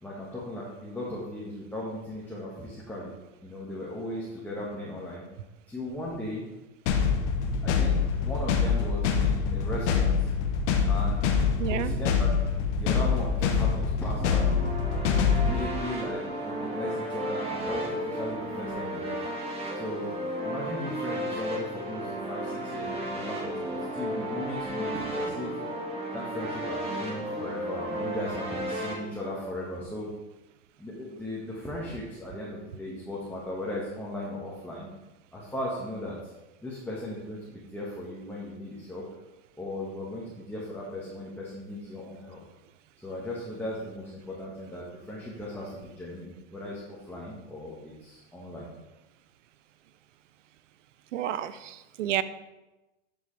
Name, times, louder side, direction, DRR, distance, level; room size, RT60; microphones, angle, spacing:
voice 1, 0.0-3.1 3.4-5.2 5.7-6.4 7.6-8.0 8.2-10.3 10.9-11.4 11.7-12.3 12.7-14.5 15.1-19.2 19.7-20.1 20.4-25.5 26.1-30.1 30.8-34.9 35.3-36.3 36.6-39.1 39.6-42.4 43.0-48.7, left 1 dB, 5° left, -6 dB, 1.7 m, -37 dB
sound 1, 6.9-15.6, left 6 dB, 65° left, 1.3 m, -25 dB
voice 2, 11.6-11.9 51.1-52.2, right 12 dB, 85° right, 15 dB, 0.6 m, -30 dB
sound 2, 14.2-28.9, right 1 dB, 15° right, 1.9 m, -34 dB
11.0 x 5.5 x 3.4 m, 1.0 s
hypercardioid pair, 110°, 37 cm